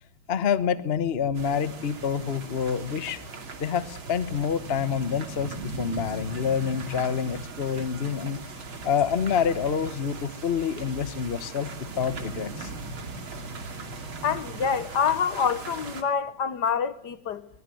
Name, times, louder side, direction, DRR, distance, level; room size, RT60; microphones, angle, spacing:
voice 1, 0.3-3.2 3.6-8.4 8.8-12.7, left 7 dB, 40° left, 1.0 m, -27 dB
sound 1, 1.3-16.0, right 3 dB, 75° right, 3.4 m, -39 dB
voice 2, 14.2-17.5, left 7 dB, 60° left, 1.5 m, -26 dB
23.5 x 20.0 x 7.7 m
omnidirectional pair, 2.3 m